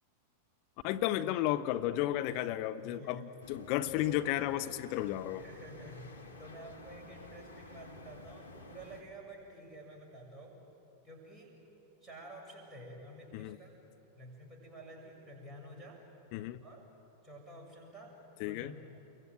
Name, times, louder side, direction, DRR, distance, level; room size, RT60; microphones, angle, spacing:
voice 1, 0.8-5.4 13.3-13.6 16.3-16.6 18.4-18.7, left 13 dB, 45° left, 9 dB, 0.9 m, -33 dB
voice 2, 2.8-3.3 3.8-4.3 5.4-10.6 11.0-11.6 12.0-13.7 14.1-16.1 16.6-16.9 17.2-19.0, right 1 dB, 10° right, -2 dB, 6.9 m, -50 dB
sound 1, 3.4-9.0, left 2 dB, 85° left, 2.2 m, -52 dB
29.5 x 22.5 x 9.0 m, 3.0 s
figure-of-eight pair, 90°, 0 cm